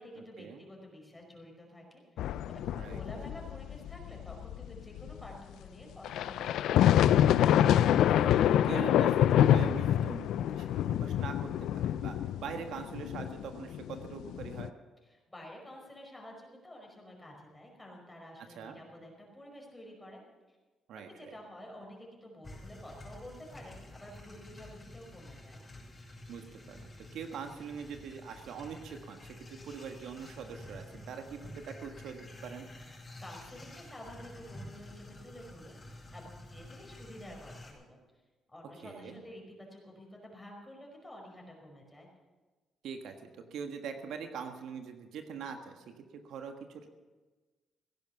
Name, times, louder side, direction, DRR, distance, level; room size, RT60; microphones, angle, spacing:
voice 1, 0.0-7.2 15.0-20.2 20.5-20.6 21.1-25.6 33.2-38.0 38.5-42.1, left 1 dB, 15° left, 0 dB, 5.1 m, -50 dB
sound 1, 2.2-5.3 6.0-14.7, left 11 dB, 80° left, 0.4 m, -27 dB
voice 2, 2.7-3.3 8.0-12.1 12.4-14.7 18.6-18.8 20.9-21.4 26.3-32.7 38.8-39.2 42.8-46.9, right 6 dB, 80° right, 6 dB, 1.5 m, -43 dB
sound 2, 22.4-37.7, left 1 dB, 30° left, 6.3 m, -50 dB
16.5 x 10.5 x 7.0 m, 1.3 s
cardioid pair, 90°, 0 cm